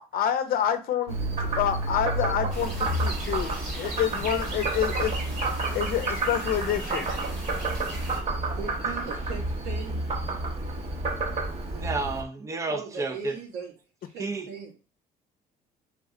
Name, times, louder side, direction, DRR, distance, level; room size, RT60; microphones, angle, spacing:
voice 1, 0.1-7.1, left 9 dB, 60° left, 0.6 m, -28 dB
Frog, 1.1-12.2, right 2 dB, 40° right, 0.9 m, -30 dB
sound 1, 2.5-8.2, right 2 dB, 70° right, 2.1 m, -38 dB
voice 2, 8.6-10.0 12.7-13.7 14.0-14.7, right 5 dB, 90° right, 1.9 m, -38 dB
voice 3, 11.7-13.4 14.2-14.5, right 3 dB, 20° right, 0.6 m, -31 dB
3.5 x 3.2 x 3.7 m
cardioid pair, 110°, 17 cm